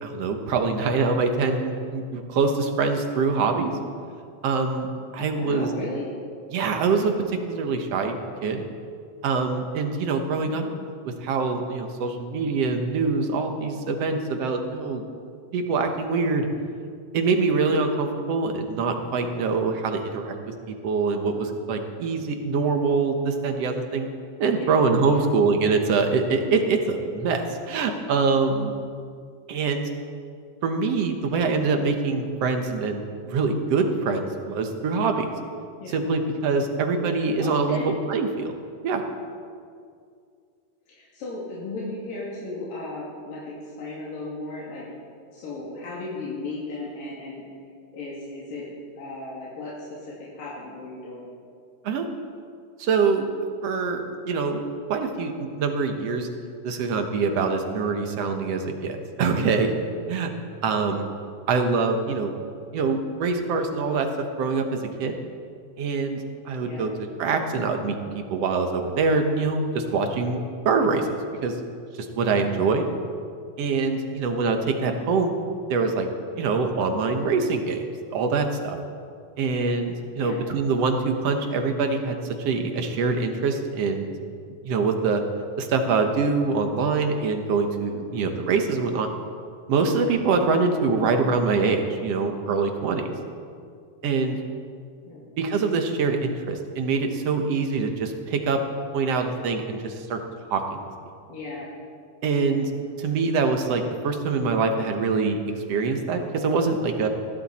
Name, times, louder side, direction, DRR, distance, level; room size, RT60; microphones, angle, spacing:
voice 1, 0.0-3.8 4.4-5.7 6.5-8.6 9.2-10.6 11.1-15.0 15.5-16.5 17.1-20.4 20.7-24.1 24.4-28.7 29.5-29.9 30.6-35.3 35.9-38.5 38.8-39.0 51.8-52.1 52.8-53.3 53.6-56.3 56.6-59.7 60.1-60.3 60.6-61.1 61.5-62.3 62.7-65.2 65.8-66.9 67.2-70.4 70.7-71.6 72.0-72.8 73.6-75.3 75.7-76.1 76.3-77.8 78.1-78.8 79.4-84.1 84.6-85.2 85.6-89.1 89.7-93.1 94.0-94.4 95.4-98.6 98.9-100.2 100.5-100.8 102.2-102.7 103.0-105.4 105.7-107.1, right 4 dB, 60° right, 5 dB, 1.9 m, -24 dB
voice 2, 5.1-6.0 10.4-10.7 24.5-25.2 35.8-36.0 37.4-37.9 40.9-44.8 45.3-47.4 47.9-48.6 48.9-51.2 66.6-66.8 72.3-72.7 80.2-80.4 95.0-95.2 101.3-101.7, left 3 dB, 80° left, -7 dB, 4.4 m, -36 dB
20.5 x 15.5 x 4.3 m, 2.3 s
omnidirectional pair, 3.9 m